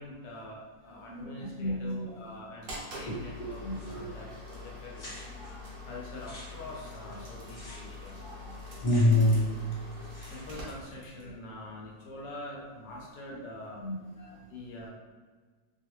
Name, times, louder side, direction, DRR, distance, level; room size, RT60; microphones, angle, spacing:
voice 1, 0.0-5.2 5.9-8.2 10.3-13.8 14.5-14.9, left 1 dB, 75° left, -3 dB, 1.2 m, -45 dB
voice 2, 1.0-2.0 2.7-3.1 3.6-4.0 5.2-5.9 7.6-7.7 8.1-9.4 9.7-10.0 11.2-11.3 12.9-13.4 13.8-14.4, left 1 dB, 30° left, -8 dB, 0.6 m, -30 dB
sound 1, 2.6-11.3, left 2 dB, 85° right, 0.5 m, -44 dB
sound 2, 3.7-4.2 4.5-4.6 4.9-5.5 6.0-9.6 9.8-10.7, left 1 dB, 50° left, 1.0 m, -50 dB
2.8 x 2.4 x 2.9 m, 1.4 s
omnidirectional pair, 2.0 m